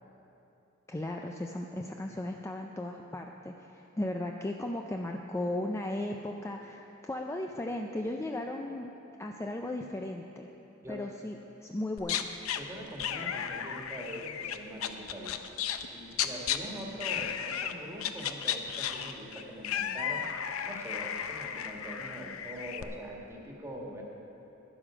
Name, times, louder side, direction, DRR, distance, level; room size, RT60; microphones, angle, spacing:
voice 1, 0.9-8.9 9.2-10.5 10.9-12.4, left 1 dB, 15° left, 2 dB, 0.4 m, -36 dB
sound 1, 12.0-12.6 13.0-15.9 16.1-16.6 17.0-17.7 18.0-22.8, left 9 dB, 80° left, 0.6 m, -34 dB
voice 2, 12.5-24.0, equal, 15° right, -2 dB, 1.6 m, -43 dB
12.0 x 11.0 x 4.9 m, 3.0 s
head